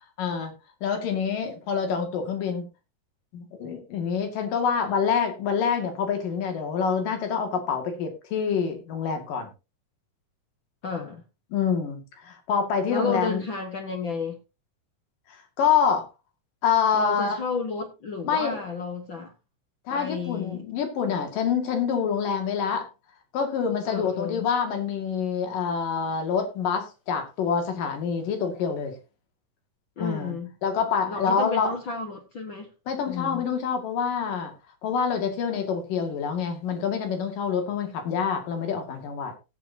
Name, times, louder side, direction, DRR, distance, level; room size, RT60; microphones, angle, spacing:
voice 1, 0.2-0.5 0.8-2.7 3.3-9.5 11.5-13.4 15.6-16.1 16.6-17.4 18.2-18.6 19.9-22.9 23.3-29.0 30.0-30.4 30.6-31.8 32.9-34.5 34.8-39.3, left 6 dB, 85° left, 3.9 m, -26 dB
voice 2, 10.8-11.2 12.9-14.4 16.9-19.3 19.9-20.6 23.9-24.4 30.0-30.5 31.1-32.7 33.0-33.5, left 4 dB, 50° left, 1.7 m, -32 dB
18.5 x 8.1 x 2.8 m
omnidirectional pair, 3.8 m